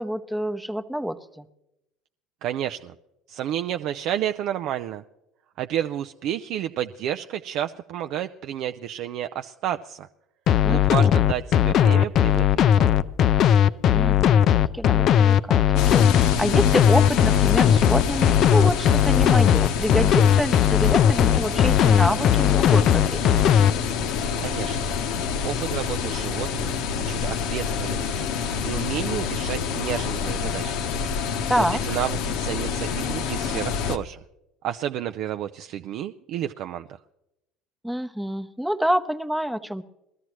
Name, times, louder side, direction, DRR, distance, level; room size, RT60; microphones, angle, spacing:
voice 1, 0.0-1.5 10.6-11.1 13.9-23.4 31.5-31.8 37.8-39.8, equal, 5° right, 9 dB, 0.8 m, -27 dB
voice 2, 2.4-2.9 3.3-5.0 5.6-10.1 10.7-13.0 24.4-24.9 25.4-28.3 28.6-30.8 31.8-34.2 34.6-36.9, right 11 dB, 60° right, 8 dB, 0.4 m, -31 dB
sound 1, 10.5-23.7, left 10 dB, 55° left, 0.4 m, -18 dB
sound 2, 15.8-34.0, left 6 dB, 70° left, 0.8 m, -27 dB
20.5 x 13.5 x 3.1 m, 0.88 s
hypercardioid pair, 75°, 0 cm